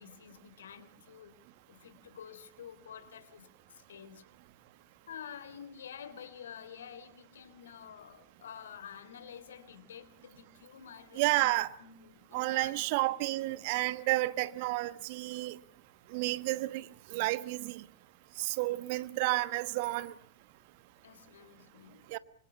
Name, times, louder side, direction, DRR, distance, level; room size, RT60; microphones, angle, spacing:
voice 1, 0.0-1.3 1.7-4.3 5.1-11.5 11.8-12.9 21.0-22.2, left 8 dB, 65° left, 3.2 m, -49 dB
voice 2, 11.1-11.7 12.3-15.6 16.1-17.8 18.4-20.1 22.1-22.2, right 19 dB, 50° right, 1.2 m, -31 dB
26.0 x 26.0 x 7.2 m
figure-of-eight pair, 90°, 0 cm